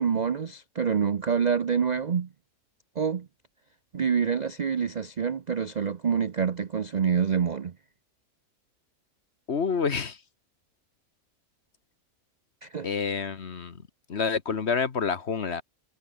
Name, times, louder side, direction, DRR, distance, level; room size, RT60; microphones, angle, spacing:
voice 1, 0.0-2.3 3.0-3.3 3.9-7.7 12.6-12.9, right 6 dB, 50° right, 0.5 m, -26 dB
voice 2, 9.5-10.2 12.8-13.8 14.1-15.6, left 5 dB, 45° left, 1.5 m, -28 dB
omnidirectional pair, 1.6 m